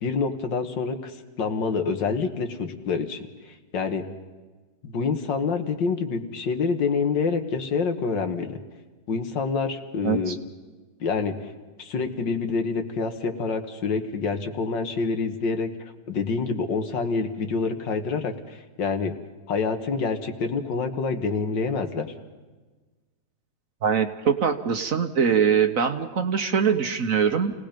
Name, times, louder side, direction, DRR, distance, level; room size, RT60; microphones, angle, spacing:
voice 1, 0.0-4.1 4.8-8.6 9.1-10.4 11.0-11.5 11.8-15.7 16.1-19.1 19.5-22.1, left 4 dB, 75° left, 6 dB, 2.2 m, -27 dB
voice 2, 10.0-10.3 23.8-27.5, right 7 dB, 50° right, 7 dB, 1.3 m, -23 dB
29.0 x 19.0 x 5.2 m, 1.3 s
omnidirectional pair, 2.0 m